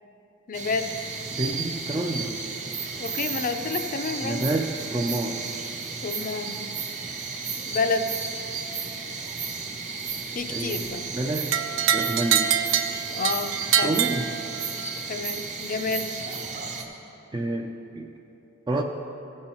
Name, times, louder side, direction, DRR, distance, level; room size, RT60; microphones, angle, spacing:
voice 1, 0.5-1.0 3.0-4.5 6.0-6.6 7.7-8.1 10.3-11.1 13.1-14.0 15.1-16.1, left 4 dB, 45° left, 7 dB, 0.5 m, -29 dB
sound 1, 0.5-16.8, right 5 dB, 40° right, 0.8 m, -33 dB
voice 2, 1.3-2.3 4.2-5.4 10.5-11.5 11.9-12.5 13.8-14.3 17.3-18.1 18.7-18.8, right 2 dB, 20° right, 2 dB, 0.4 m, -28 dB
sound 2, 11.5-14.9, right 9 dB, 85° right, 0.5 m, -25 dB
15.5 x 5.6 x 4.4 m, 3.0 s
head